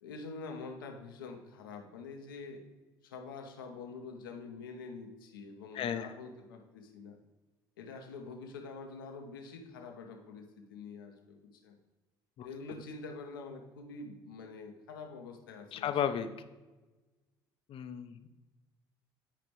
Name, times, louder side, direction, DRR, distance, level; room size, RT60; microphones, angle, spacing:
voice 1, 0.0-2.6 3.0-7.2 7.8-11.8 12.4-15.9, left 4 dB, 90° left, 3 dB, 0.9 m, -46 dB
voice 2, 5.7-6.1 12.4-12.5 15.7-16.3 17.7-18.3, left 9 dB, 55° left, 10 dB, 0.7 m, -34 dB
10.5 x 5.0 x 3.1 m, 1.2 s
hypercardioid pair, 60°, 11 cm